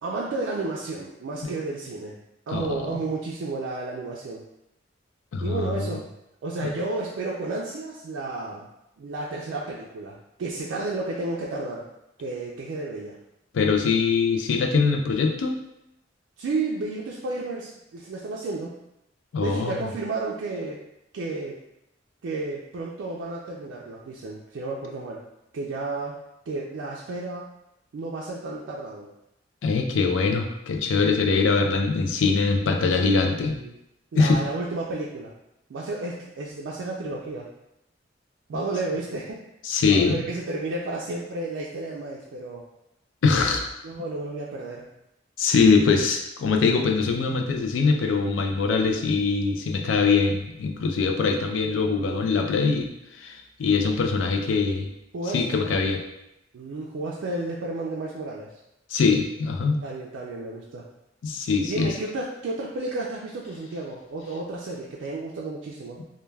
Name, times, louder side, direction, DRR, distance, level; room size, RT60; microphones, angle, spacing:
voice 1, 0.0-2.2 2.5-4.5 5.4-6.0 6.4-8.7 9.0-11.9 12.2-13.2 16.4-18.7 19.4-20.8 21.1-21.6 22.2-25.2 25.5-27.5 27.9-29.1 33.6-33.7 34.1-35.3 35.7-37.5 38.5-39.4 39.9-42.6 43.8-44.9 48.0-48.1 52.0-52.3 55.1-55.8 56.5-58.6 59.8-60.9 61.6-66.0, right 2 dB, 75° right, -4 dB, 0.3 m, -32 dB
voice 2, 2.5-2.9 5.3-6.0 13.5-15.6 19.3-19.8 29.6-33.6 34.1-34.4 39.6-40.3 43.2-43.7 45.4-52.9 53.2-54.9 55.3-56.0 58.9-59.8 61.2-61.9, left 4 dB, 80° left, 3 dB, 0.4 m, -22 dB
2.2 x 2.2 x 3.2 m, 0.84 s
head